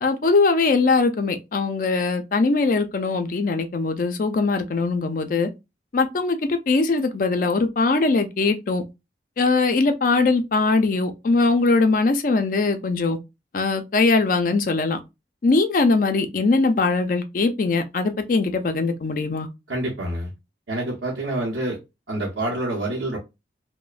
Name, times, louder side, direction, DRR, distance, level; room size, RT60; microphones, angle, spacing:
voice 1, 0.0-5.5 5.9-8.8 9.4-13.2 13.5-15.0 15.4-19.5, left 3 dB, 50° left, 0.4 m, -21 dB
voice 2, 19.7-20.3 20.7-21.8 22.1-23.2, right 1 dB, 80° right, 0.8 m, -27 dB
2.9 x 2.0 x 2.4 m
head